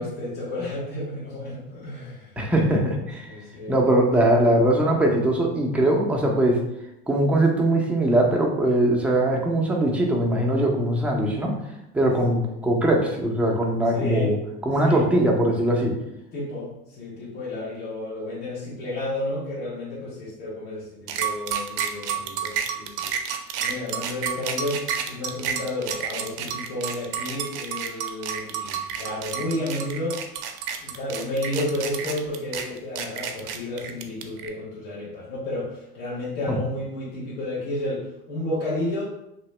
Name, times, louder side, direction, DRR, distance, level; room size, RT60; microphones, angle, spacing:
voice 1, 0.0-2.8 3.3-3.8 13.9-14.4 14.8-15.1 16.3-23.1 23.6-30.2 30.8-39.0, left 1 dB, 65° left, -7 dB, 1.2 m, -31 dB
voice 2, 2.4-3.3 3.7-6.6 7.1-11.5 11.9-14.4 14.6-15.9 36.5-36.6, right 1 dB, 5° right, -1 dB, 0.5 m, -21 dB
sound 1, 21.1-34.5, right 8 dB, 55° right, 0.6 m, -30 dB
2.9 x 2.7 x 3.2 m, 0.84 s
hypercardioid pair, 85°, 45 cm